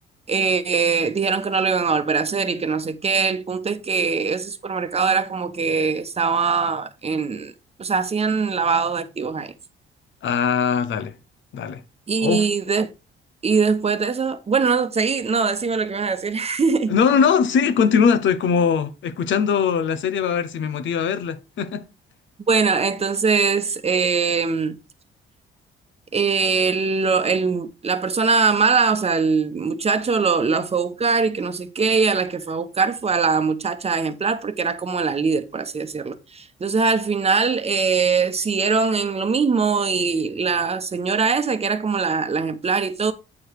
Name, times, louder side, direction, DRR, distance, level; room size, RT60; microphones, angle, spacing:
voice 1, 0.3-7.5 7.8-9.5 12.1-12.9 13.4-17.0 22.5-24.8 26.1-43.1, right 5 dB, 30° right, 1.0 m, -22 dB
voice 2, 10.2-11.1 11.5-11.8 12.2-12.5 16.9-21.8, left 6 dB, 70° left, 1.0 m, -21 dB
8.5 x 4.8 x 4.7 m
cardioid pair, 90°, 20 cm